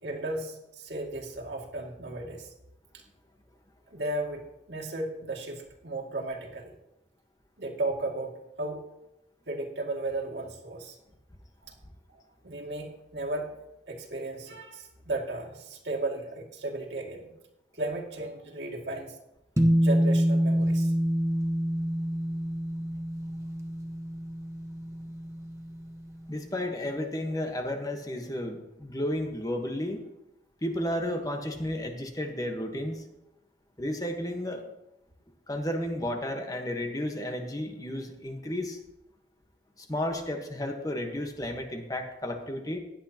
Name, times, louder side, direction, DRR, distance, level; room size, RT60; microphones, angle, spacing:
voice 1, 0.0-2.5 2.9-3.0 3.9-6.7 7.6-8.8 9.5-11.0 11.6-11.8 12.4-13.5 13.9-17.3 17.7-19.2 19.8-20.9, right 2 dB, 80° right, -1 dB, 2.3 m, -35 dB
sound 1, 19.6-26.1, equal, 15° right, 1.1 m, -27 dB
voice 2, 26.3-30.0 30.6-33.0 33.8-34.6 35.5-38.8 39.8-42.8, left 1 dB, 20° left, 4 dB, 1.2 m, -32 dB
16.0 x 10.5 x 2.9 m, 0.89 s
head